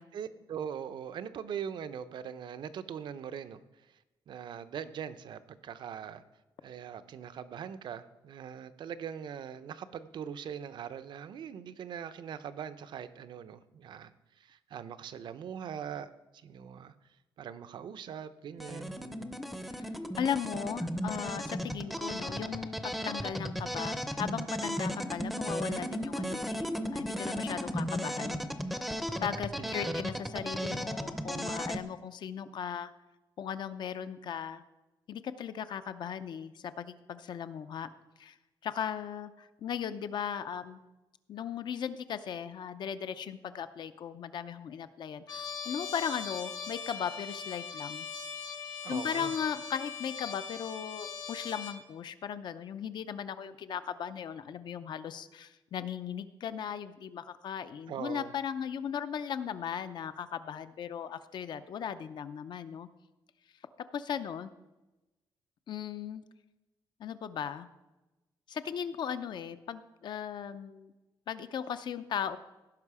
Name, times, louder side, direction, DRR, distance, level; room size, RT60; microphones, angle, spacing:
voice 1, 0.0-3.9 4.3-6.2 6.6-16.9 17.4-19.3 29.6-30.0 48.8-49.3 57.9-58.3, right 8 dB, 65° right, 13 dB, 0.6 m, -42 dB
sound 1, 18.6-31.8, equal, ahead, 0.6 m, -35 dB
voice 2, 20.2-28.4 29.2-32.9 33.4-34.6 35.1-37.9 38.2-38.4 38.6-40.8 41.3-48.1 48.9-62.9 63.9-64.5 65.7-66.2 67.0-67.7 68.5-70.9 71.3-72.4, left 8 dB, 60° left, 12 dB, 0.6 m, -37 dB
Trumpet, 45.3-51.8, left 5 dB, 45° left, 1.1 m, -40 dB
16.5 x 5.5 x 4.8 m, 1.0 s
wide cardioid pair, 155°, 9 cm